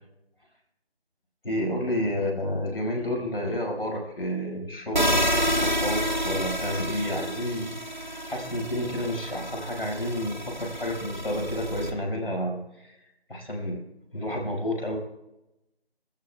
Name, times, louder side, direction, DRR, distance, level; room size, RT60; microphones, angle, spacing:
voice 1, 1.4-13.0 13.3-13.8 14.1-15.0, left 1 dB, 65° left, 0 dB, 5.7 m, -30 dB
sound 1, 4.9-11.9, equal, 45° right, 1.4 m, -29 dB
29.5 x 14.0 x 2.3 m, 0.92 s
figure-of-eight pair, 175°, 31 cm